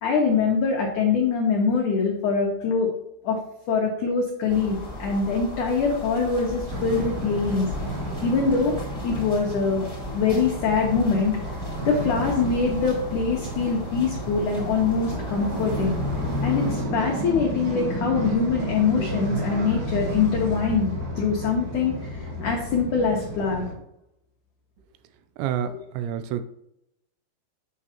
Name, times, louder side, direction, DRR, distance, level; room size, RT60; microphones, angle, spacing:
voice 1, 0.0-2.9 3.2-3.4 3.7-7.7 8.2-8.7 9.0-9.9 10.1-11.3 11.8-16.0 16.4-20.9 21.2-23.7 25.7-25.8, left 5 dB, 85° left, -1 dB, 1.7 m, -23 dB
sound 1, 4.5-16.8, left 1 dB, 20° right, 1.0 m, -37 dB
sound 2, 6.7-23.7, equal, 55° right, 2.2 m, -31 dB
voice 2, 25.4-25.7 26.0-26.4, right 10 dB, 85° right, 10 dB, 2.8 m, -27 dB
9.3 x 6.2 x 2.9 m, 0.80 s
omnidirectional pair, 5.3 m